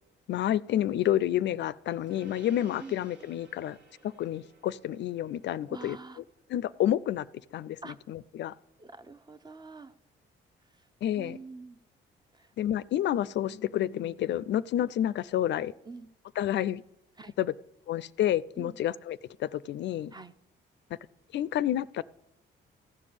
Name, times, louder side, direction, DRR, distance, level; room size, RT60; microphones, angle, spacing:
voice 1, 0.3-3.8 4.0-6.0 6.5-7.3 7.5-7.8 8.1-8.5 11.0-11.4 12.6-15.7 16.4-16.8 17.4-17.5 17.9-20.1 21.3-22.0, left 11 dB, 65° left, 18 dB, 0.4 m, -29 dB
Gong, 2.1-11.8, right 2 dB, 70° right, 1.8 m, -59 dB
voice 2, 5.7-6.2 7.8-8.0 8.8-9.9 10.8-10.9 11.1-11.8 12.3-12.5 15.8-16.1 17.2-17.3 18.6-18.8 20.1-20.3, right 3 dB, 20° right, 13 dB, 0.6 m, -45 dB
15.0 x 5.3 x 8.5 m, 0.84 s
cardioid pair, 90°, 20 cm